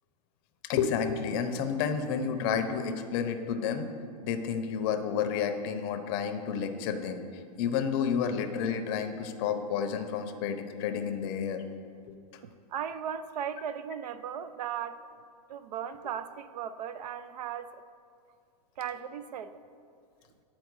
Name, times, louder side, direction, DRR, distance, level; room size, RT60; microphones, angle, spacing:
voice 1, 0.6-3.9 4.2-7.2 7.6-11.6 12.1-12.2, left 7 dB, 40° left, 7 dB, 0.6 m, -30 dB
voice 2, 12.7-15.0 15.5-17.8 18.8-19.5, right 8 dB, 75° right, 13 dB, 0.5 m, -37 dB
9.5 x 4.3 x 4.7 m, 2.3 s
hypercardioid pair, 140°, 21 cm